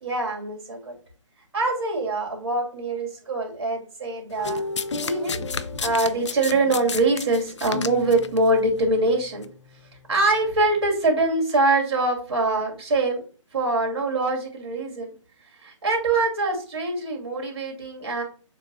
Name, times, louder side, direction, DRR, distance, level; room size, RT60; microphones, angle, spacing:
voice 1, 0.0-1.0 1.5-4.6 5.0-9.5 10.1-13.2 13.5-15.1 15.6-18.2, right 2 dB, 50° right, 0 dB, 2.2 m, -24 dB
Domestic sounds home sounds, 4.4-8.4 9.3-9.5, left 6 dB, 60° left, 0.4 m, -32 dB
sound 1, 4.4-10.9, left 4 dB, 45° left, 0.9 m, -38 dB
6.9 x 2.7 x 2.6 m, 0.40 s
figure-of-eight pair, 145°, 17 cm